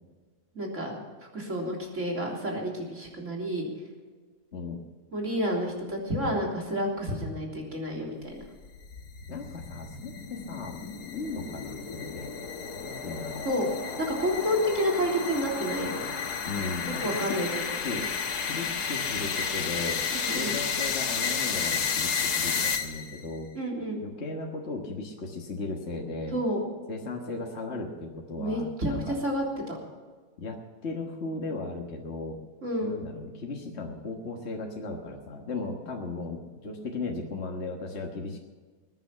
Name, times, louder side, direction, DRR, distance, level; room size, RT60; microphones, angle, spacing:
voice 1, 0.5-0.9 1.3-3.7 5.1-8.2 13.5-13.7 14.0-16.1 17.0-17.5 20.1-20.5 23.5-24.0 26.3-26.6 28.4-29.8 32.6-32.9, equal, 50° right, -1 dB, 3.8 m, -29 dB
sound 1, 8.4-23.2, left 6 dB, 85° left, 1.9 m, -32 dB
voice 2, 9.3-10.8 11.1-12.3 12.8-13.4 16.4-17.5 17.8-18.1 18.4-20.0 20.3-23.5 24.0-26.4 26.9-29.2 30.4-32.4 32.8-38.4, left 3 dB, 45° left, 1 dB, 1.7 m, -36 dB
21.0 x 9.8 x 5.8 m, 1.4 s
omnidirectional pair, 1.6 m